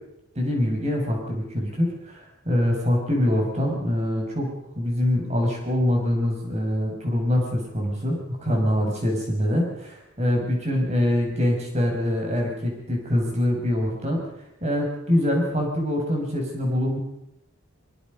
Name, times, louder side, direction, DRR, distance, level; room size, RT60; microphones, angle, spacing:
voice 1, 0.3-14.2 14.6-17.0, left 1 dB, 30° right, 0 dB, 6.3 m, -24 dB
23.0 x 22.5 x 5.4 m, 0.84 s
head